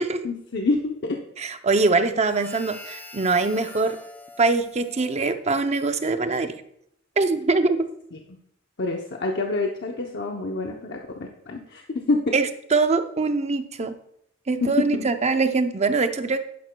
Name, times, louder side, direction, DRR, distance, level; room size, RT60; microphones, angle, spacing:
voice 1, 0.2-1.2 8.8-12.3 14.6-15.0, left 3 dB, 60° left, 2 dB, 0.8 m, -27 dB
voice 2, 1.4-4.0 4.4-6.6 7.2-7.9 12.3-14.0 14.5-16.4, right 3 dB, 35° right, 8 dB, 0.6 m, -23 dB
Harmonica, 2.2-6.0, left 2 dB, 10° left, 0.7 m, -44 dB
11.0 x 10.5 x 2.3 m, 0.73 s
head